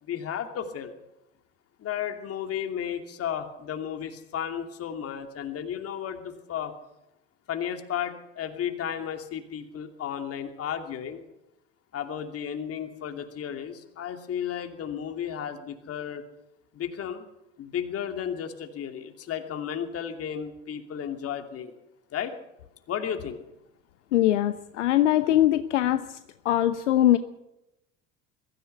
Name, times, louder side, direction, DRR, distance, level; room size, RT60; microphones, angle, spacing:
voice 1, 0.0-0.9 1.8-6.7 7.5-11.2 11.9-16.2 16.7-17.2 17.6-21.7 22.1-22.4 22.9-23.4, left 9 dB, 40° left, 6 dB, 2.8 m, -33 dB
voice 2, 24.1-26.0 26.4-27.2, left 13 dB, 70° left, 11 dB, 1.0 m, -22 dB
22.5 x 14.5 x 8.1 m, 0.90 s
figure-of-eight pair, 70°, 38 cm